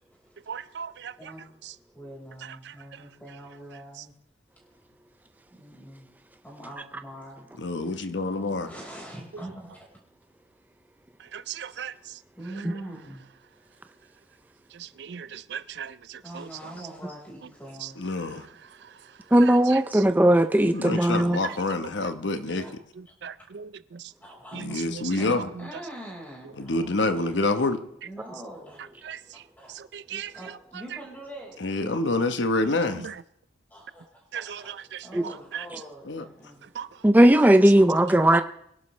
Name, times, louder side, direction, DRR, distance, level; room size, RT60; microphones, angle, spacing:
voice 1, 0.5-1.3 1.6-1.7 2.4-3.0 4.0-4.1 9.3-9.4 11.2-12.2 14.7-16.7 17.8-17.9 18.3-20.0 20.7-21.6 22.5-22.7 23.0-24.1 24.5-25.7 29.0-30.6 32.6-33.2 34.3-35.7 36.6-37.0, right 8 dB, 70° right, 0.4 m, -39 dB
voice 2, 1.9-4.1 5.5-6.1 6.4-7.5 8.6-9.8 12.3-13.3 16.2-18.1 20.2-20.4 20.9-21.4 22.6-22.7 24.2-24.9 25.2-26.9 27.2-27.3 28.0-28.9 29.6-29.7 30.1-31.6 33.7-34.6 35.0-36.7 38.0-38.2, right 1 dB, 10° left, 4.5 m, -43 dB
voice 3, 7.6-8.7 18.0-18.5 20.6-22.6 24.5-25.5 26.6-27.8 31.6-33.1 36.1-36.2, left 2 dB, 85° left, 1.1 m, -27 dB
voice 4, 19.3-21.4 35.1-35.2 37.0-38.4, right 1 dB, 10° right, 0.4 m, -18 dB
23.5 x 11.5 x 3.2 m
head